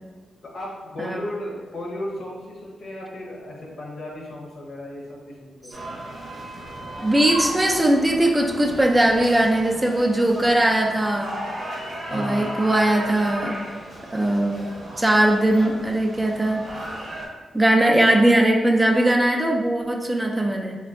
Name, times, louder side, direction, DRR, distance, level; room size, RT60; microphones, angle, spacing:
voice 1, 0.4-5.8 12.1-12.7, left 1 dB, 70° left, -3 dB, 0.7 m, -35 dB
sound 1, 5.7-17.3, right 1 dB, 65° right, 0.7 m, -35 dB
voice 2, 7.0-11.4 12.1-13.6 14.1-14.6 15.0-16.7 17.5-20.8, right 1 dB, 20° right, 1 dB, 0.3 m, -20 dB
3.3 x 2.2 x 2.4 m, 1.4 s
cardioid pair, 60°, 0 cm